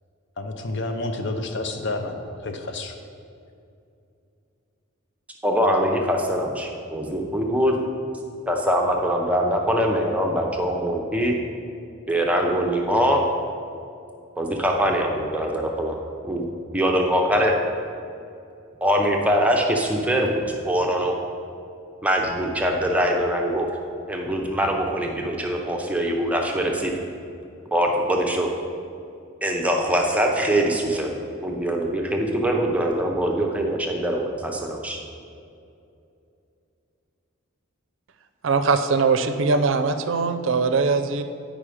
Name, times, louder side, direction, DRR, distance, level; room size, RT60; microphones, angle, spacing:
voice 1, 0.4-3.0, left 2 dB, 60° left, 5 dB, 0.7 m, -29 dB
voice 2, 5.4-7.7 8.5-11.3 12.1-13.2 14.4-16.0 16.2-16.4 16.7-17.5 18.8-21.1 22.0-23.7 24.1-26.9 27.7-28.5 29.4-35.0, equal, 5° right, 1 dB, 0.6 m, -23 dB
voice 3, 38.4-41.2, right 4 dB, 65° right, 8 dB, 0.5 m, -21 dB
8.8 x 5.0 x 4.9 m, 2.6 s
head